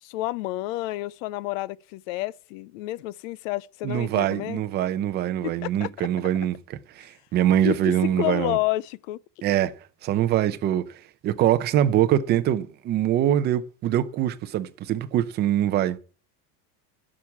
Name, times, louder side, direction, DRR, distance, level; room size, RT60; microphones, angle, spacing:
voice 1, 0.0-4.6 5.4-5.9 7.6-7.8 8.2-9.2, left 18 dB, 60° left, 0.6 m, -30 dB
voice 2, 3.8-8.6 9.4-9.7 10.0-10.9 11.2-16.0, right 11 dB, 25° right, 0.6 m, -23 dB
12.0 x 6.2 x 8.5 m
cardioid pair, 180°, 45 cm